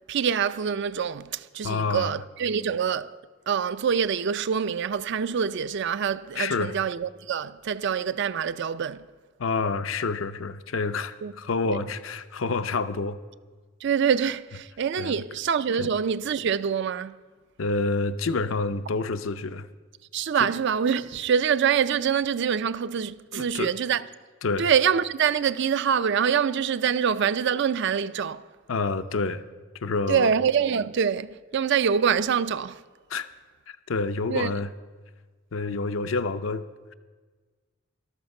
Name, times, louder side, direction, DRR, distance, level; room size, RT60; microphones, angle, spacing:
voice 1, 0.1-3.2 3.5-9.1 11.2-11.3 11.6-11.8 13.8-17.2 20.1-24.0 24.6-28.5 30.1-32.8 34.3-34.5, right 7 dB, 60° right, 0.4 m, -25 dB
voice 2, 1.6-2.2 6.4-6.7 9.4-13.2 15.0-15.1 15.8-15.9 17.6-19.7 20.4-20.5 23.3-23.7 24.4-24.7 28.7-29.4 29.8-30.3 33.1-33.3 33.7-34.7 35.5-36.6, left 3 dB, 80° left, 0.6 m, -28 dB
13.5 x 12.5 x 5.4 m
head